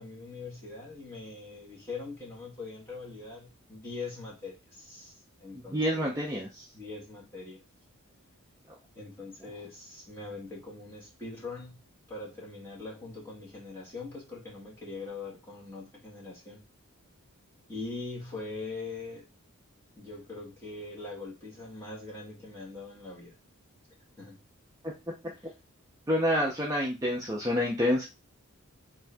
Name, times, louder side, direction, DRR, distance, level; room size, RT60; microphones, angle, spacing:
voice 1, 0.0-5.1 5.4-6.2 6.7-7.6 8.9-11.8 12.1-16.6 17.7-19.2 20.0-23.3 24.2-24.4 25.3-25.5, left 3 dB, 10° left, 1.5 m, -42 dB
voice 2, 5.6-6.6 26.1-28.0, equal, 15° right, 0.5 m, -28 dB
3.6 x 2.6 x 3.3 m
head